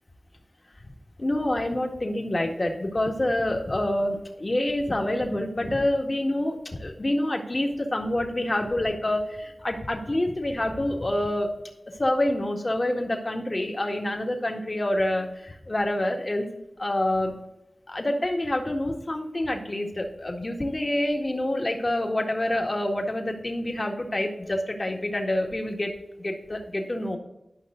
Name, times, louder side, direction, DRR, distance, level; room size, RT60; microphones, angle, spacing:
voice 1, 1.2-11.5 11.9-16.5 16.8-17.3 17.9-25.9 26.2-27.2, left 1 dB, 45° left, 2 dB, 1.9 m, -27 dB
12.5 x 5.5 x 3.8 m, 0.89 s
cardioid pair, 40°, 0 cm